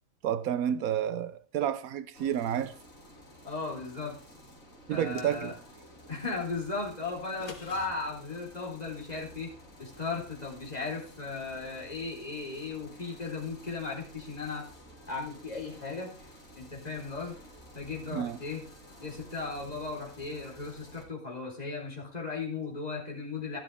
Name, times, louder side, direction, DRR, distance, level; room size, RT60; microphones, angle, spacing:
voice 1, 0.2-2.8 4.9-5.5 18.1-18.4, right 10 dB, 85° right, 1.2 m, -30 dB
sound 1, 2.1-21.0, equal, 70° left, 3.8 m, -53 dB
voice 2, 3.4-4.2 4.9-5.5 6.1-9.5 9.8-14.7 15.1-16.1 16.5-17.3 17.7-18.6 19.0-23.6, left 4 dB, 30° left, 4.0 m, -36 dB
sound 2, 4.9-5.8 7.2-7.9, left 4 dB, 90° left, 2.1 m, -48 dB
12.0 x 12.0 x 3.4 m
omnidirectional pair, 1.5 m